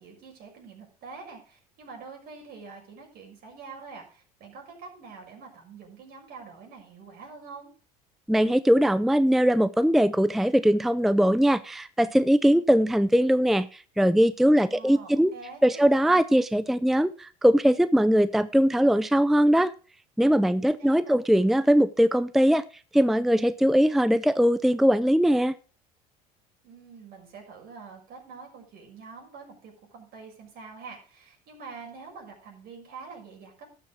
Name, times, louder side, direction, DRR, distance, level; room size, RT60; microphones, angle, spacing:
voice 1, 0.0-7.7 14.6-16.0 20.5-21.2 26.6-33.6, right 4 dB, 60° right, 1 dB, 6.1 m, -45 dB
voice 2, 8.3-15.3 15.6-19.7 20.2-22.6 22.9-25.5, equal, ahead, 16 dB, 0.5 m, -21 dB
12.0 x 7.0 x 6.2 m, 0.39 s
supercardioid pair, 85°, 18 cm